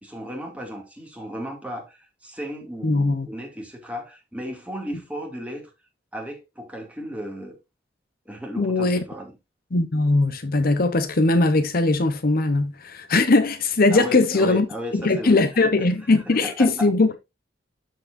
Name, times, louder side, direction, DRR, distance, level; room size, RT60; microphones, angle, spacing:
voice 1, 0.0-5.7 6.1-7.6 8.3-9.3 13.9-16.9, equal, 10° right, 2.3 m, -35 dB
voice 2, 2.8-3.3 8.6-9.0 9.7-14.7 14.9-17.1, left 2 dB, 55° left, 0.8 m, -20 dB
12.5 x 4.8 x 2.6 m
head